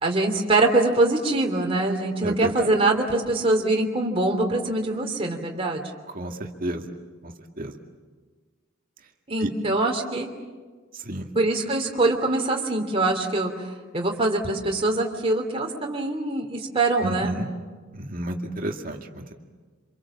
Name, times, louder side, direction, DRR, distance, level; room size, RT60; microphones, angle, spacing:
voice 1, 0.0-5.8 9.3-10.3 11.3-13.5 13.9-17.4, right 2 dB, 30° right, 2 dB, 3.0 m, -23 dB
voice 2, 2.2-2.7 6.1-6.8 7.6-7.7 9.4-9.5 11.1-11.3 17.0-17.5 17.9-19.3, right 1 dB, 45° right, 3 dB, 2.1 m, -31 dB
28.0 x 26.0 x 7.3 m, 1.4 s
head